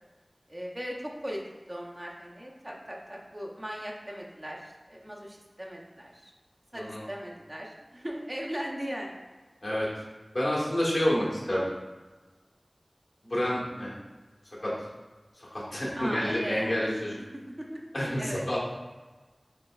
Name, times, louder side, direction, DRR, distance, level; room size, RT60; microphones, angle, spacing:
voice 1, 0.5-1.4 1.7-6.3 6.7-9.1 16.0-16.7 17.3-17.4 17.7-17.9 18.2-18.6, equal, 30° right, -2 dB, 0.7 m, -38 dB
voice 2, 10.3-11.7 13.3-13.9 14.6-14.7 15.5-17.2 17.9-18.6, equal, 70° left, -6 dB, 1.5 m, -28 dB
5.2 x 3.8 x 2.4 m, 1.2 s
wide cardioid pair, 45°, 0 cm